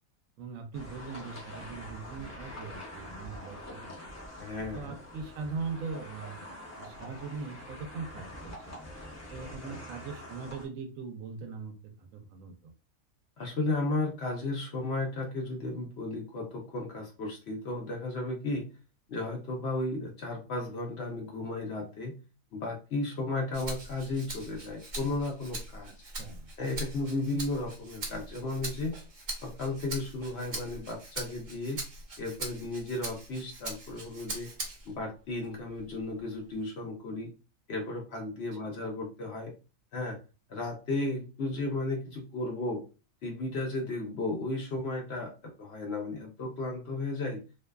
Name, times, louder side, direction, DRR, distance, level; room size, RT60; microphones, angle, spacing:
voice 1, 0.4-4.2 4.7-8.8 9.3-12.7 25.9-26.5, right 5 dB, 75° right, 5 dB, 0.9 m, -41 dB
sound 1, 0.7-10.7, left 1 dB, 25° left, 0.4 m, -45 dB
voice 2, 4.4-4.9 9.6-9.8 13.4-18.6 19.1-22.1 22.5-25.9 26.6-28.9 29.4-31.8 32.2-34.5 34.9-37.3 37.7-39.5 39.9-40.2 40.5-42.8 43.2-47.4, left 2 dB, 60° left, 0 dB, 0.8 m, -34 dB
Rattle (instrument), 23.5-35.0 35.4-36.6, right 2 dB, 45° right, 0.7 m, -41 dB
2.5 x 2.2 x 2.2 m, 0.33 s
omnidirectional pair, 1.4 m